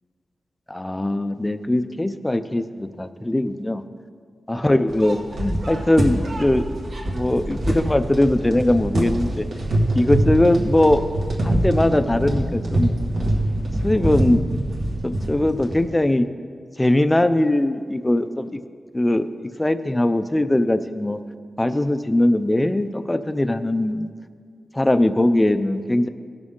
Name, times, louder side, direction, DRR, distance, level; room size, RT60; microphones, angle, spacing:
voice 1, 0.7-3.8 4.5-6.6 7.1-9.5 10.0-11.1 11.4-12.9 13.8-14.4 15.0-16.3 16.8-18.6 18.9-19.3 19.6-21.2 21.6-24.1 24.7-26.1, left 1 dB, 15° left, 11 dB, 0.4 m, -20 dB
sound 1, 4.9-15.9, right 1 dB, 70° right, 1.7 m, -24 dB
18.0 x 6.2 x 3.7 m, 2.1 s
wide cardioid pair, 125°, 0 cm